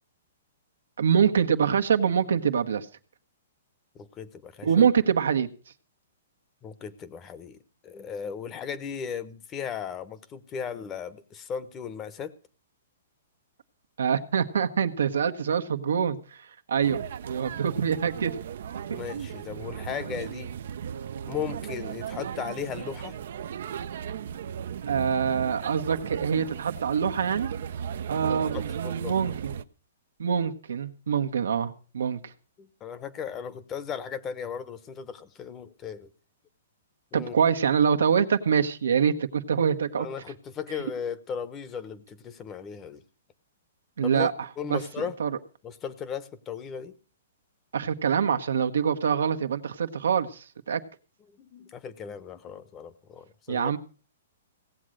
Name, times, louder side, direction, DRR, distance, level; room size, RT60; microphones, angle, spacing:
voice 1, 1.0-2.9 4.6-5.5 14.0-16.2 16.7-18.3 24.9-27.5 28.1-29.5 30.2-32.2 37.1-40.1 44.0-44.3 44.7-44.8 45.2-45.3 47.7-50.8 53.5-53.8, right 7 dB, 85° right, 8 dB, 1.2 m, -25 dB
voice 2, 3.9-4.9 6.6-7.6 7.8-12.3 18.9-20.5 21.3-23.2 28.5-29.1 32.6-36.1 37.1-37.4 40.0-43.0 44.0-44.3 44.6-45.1 45.6-46.9 51.3-53.7, left 7 dB, 20° left, 14 dB, 0.9 m, -36 dB
sound 1, 16.8-29.6, right 8 dB, 65° right, 0.6 m, -36 dB
17.0 x 7.6 x 6.5 m, 0.39 s
hypercardioid pair, 145°, 0 cm